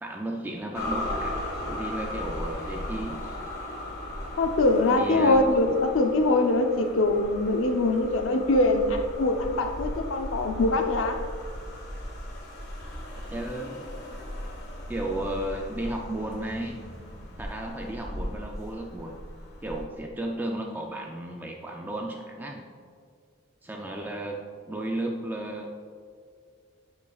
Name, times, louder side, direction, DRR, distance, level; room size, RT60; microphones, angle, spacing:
voice 1, 0.0-3.4 5.0-5.4 13.1-13.9 14.9-16.8 17.4-19.2 19.6-22.6 23.6-25.7, right 1 dB, 10° right, 1 dB, 0.4 m, -34 dB
sound 1, 0.7-19.8, left 1 dB, 55° left, 1.5 m, -37 dB
voice 2, 4.4-11.2, left 2 dB, 80° left, 5 dB, 0.7 m, -23 dB
10.5 x 5.6 x 2.4 m, 2.1 s
head